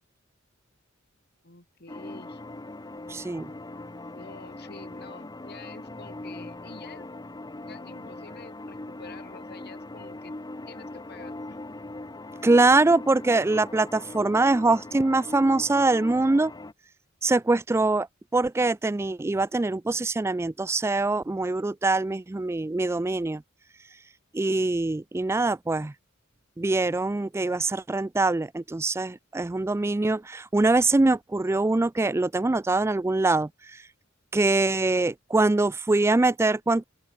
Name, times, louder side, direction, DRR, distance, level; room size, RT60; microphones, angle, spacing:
voice 1, 1.4-2.4 4.1-7.1 7.7-10.3 10.7-11.6, left 3 dB, 50° left, 7.1 m, -48 dB
sound 1, 1.9-16.7, left 2 dB, 20° left, 0.8 m, -40 dB
voice 2, 3.1-3.5 12.4-16.5 17.2-18.1 18.3-23.4 24.3-25.9 26.6-33.8 34.3-36.8, right 2 dB, 10° right, 0.3 m, -23 dB
open air
head